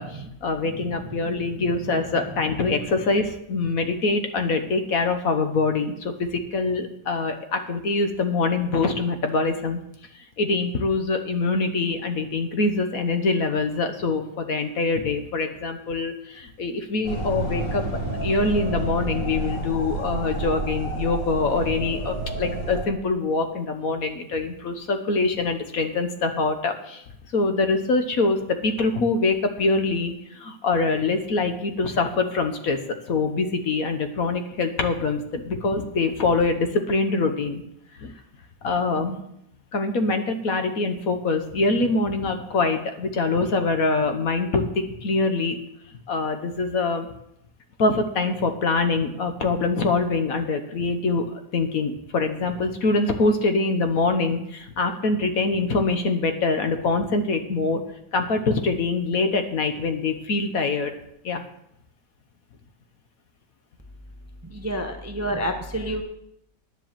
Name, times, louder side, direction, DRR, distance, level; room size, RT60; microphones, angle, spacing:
voice 1, 0.0-9.8 10.4-27.0 27.3-37.6 38.0-38.1 38.6-39.2 39.7-45.6 46.1-47.1 47.8-57.8 58.1-60.9 61.2-61.4, left 3 dB, 60° left, 7 dB, 1.4 m, -24 dB
voice 2, 0.6-2.0 64.4-66.0, right 1 dB, 15° right, 5 dB, 0.6 m, -31 dB
sound 1, 17.0-22.9, right 2 dB, 30° left, 2.6 m, -29 dB
9.9 x 7.5 x 7.4 m, 0.78 s
omnidirectional pair, 1.8 m